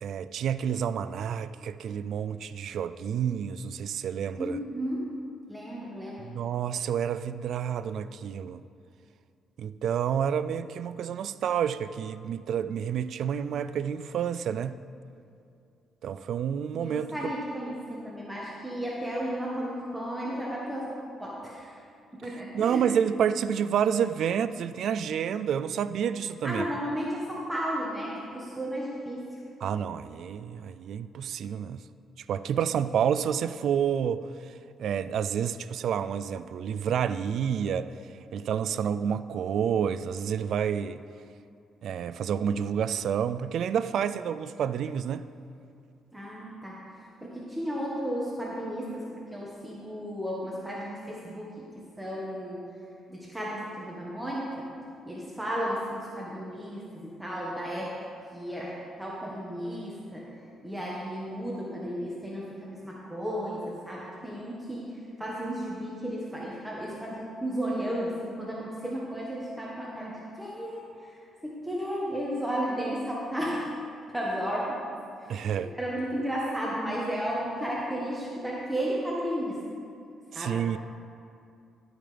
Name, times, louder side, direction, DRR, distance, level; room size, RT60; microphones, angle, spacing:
voice 1, 0.0-4.6 6.2-8.6 9.6-14.8 16.0-17.1 22.5-26.7 29.6-31.8 32.3-37.9 38.3-41.0 41.8-45.3 75.3-75.7 80.3-80.8, right 8 dB, 70° right, 13 dB, 0.3 m, -29 dB
voice 2, 4.4-5.1 5.5-6.2 16.8-20.9 21.2-21.8 22.1-22.8 26.4-29.3 46.1-46.8 47.2-49.0 49.3-52.6 53.1-54.7 55.1-57.9 58.3-60.2 60.6-73.7 74.1-74.8 75.2-79.6 80.3-80.6, equal, 5° right, -5 dB, 1.4 m, -34 dB
12.0 x 8.9 x 3.4 m, 2.5 s
cardioid pair, 90°, 0 cm